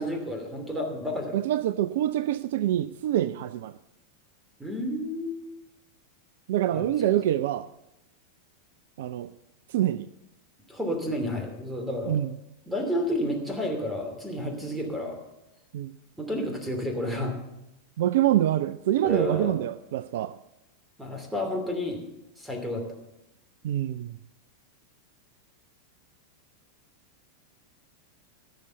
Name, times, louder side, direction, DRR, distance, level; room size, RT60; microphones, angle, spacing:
voice 1, 0.0-1.3 4.6-5.4 6.7-7.1 10.7-12.2 12.7-15.2 16.2-17.3 19.0-19.6 21.0-22.0 22.4-22.8, left 1 dB, 5° right, 3 dB, 2.8 m, -31 dB
voice 2, 1.3-3.8 6.5-7.7 9.0-9.3 9.7-10.1 12.1-12.3 15.7-15.9 18.0-20.3 23.6-24.2, right 12 dB, 55° right, 15 dB, 0.4 m, -26 dB
15.5 x 6.8 x 6.8 m, 0.91 s
figure-of-eight pair, 90°, 0 cm